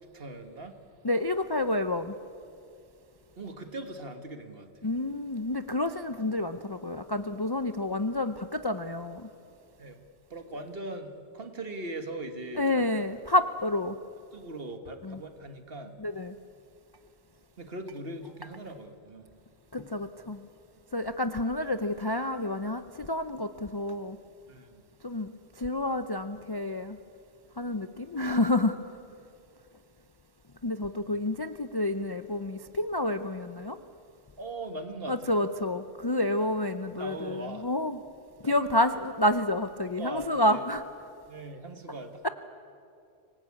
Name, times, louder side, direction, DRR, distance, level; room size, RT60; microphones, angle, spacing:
voice 1, 0.1-0.8 3.4-4.9 9.8-10.0 10.3-12.9 14.3-15.9 17.6-19.3 24.5-24.8 31.1-31.2 34.4-35.4 36.9-37.6 38.4-38.6 39.8-40.6 41.3-42.3, right 2 dB, 50° right, 7 dB, 1.7 m, -40 dB
voice 2, 1.0-2.1 4.8-9.3 12.6-14.0 15.0-15.2 16.0-16.3 19.7-20.4 20.9-24.2 25.0-27.0 27.6-28.8 30.6-33.8 35.1-38.0 38.4-40.8 42.2-42.3, left 1 dB, 30° left, 9 dB, 0.5 m, -29 dB
25.0 x 18.5 x 8.5 m, 2.4 s
omnidirectional pair, 1.2 m